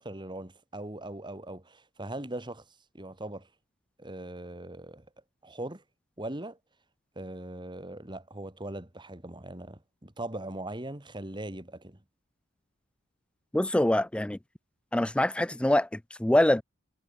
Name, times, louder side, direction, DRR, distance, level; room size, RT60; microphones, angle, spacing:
voice 1, 0.0-2.6 2.9-3.5 4.0-5.1 5.4-5.8 6.2-6.6 7.2-12.0, right 1 dB, 20° right, 2.1 m, -40 dB
voice 2, 13.5-14.4 14.9-16.6, left 1 dB, 5° left, 0.3 m, -24 dB
head